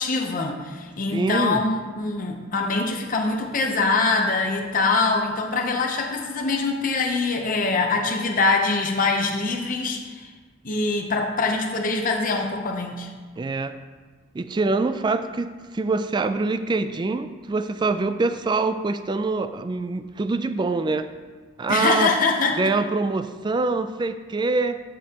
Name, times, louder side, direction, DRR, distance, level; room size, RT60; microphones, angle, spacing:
voice 1, 0.0-10.3 10.6-13.1 21.7-22.6, left 3 dB, 45° left, 1 dB, 0.7 m, -23 dB
voice 2, 1.1-1.6 13.4-13.8 14.3-21.1 21.6-22.1 22.6-24.8, right 3 dB, 25° right, 10 dB, 0.3 m, -24 dB
14.0 x 5.2 x 2.9 m, 1.4 s
head